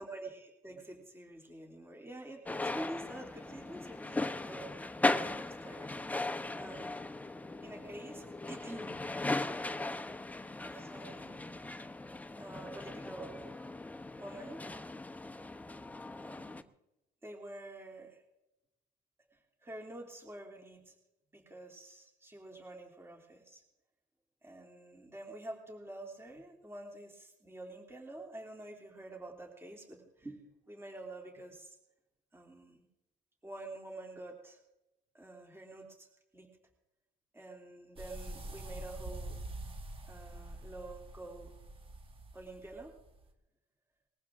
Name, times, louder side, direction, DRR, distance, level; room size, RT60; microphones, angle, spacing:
voice 1, 0.0-4.7 5.0-7.1 7.6-9.6 10.6-11.7 12.4-13.6 14.2-14.6 16.2-16.7 17.2-18.2 19.3-20.9 21.3-23.6 24.4-31.8 32.3-32.8 33.4-34.6 35.1-36.1 36.3-36.5 37.3-39.4 40.0-41.5 42.3-42.9, right 1 dB, 15° right, 1 dB, 3.0 m, -48 dB
sound 1, 2.5-16.6, left 2 dB, 10° left, 0.8 m, -38 dB
sound 2, 38.0-43.3, right 2 dB, 35° right, 2.2 m, -46 dB
20.5 x 15.0 x 3.7 m, 0.91 s
cardioid pair, 110°, 17 cm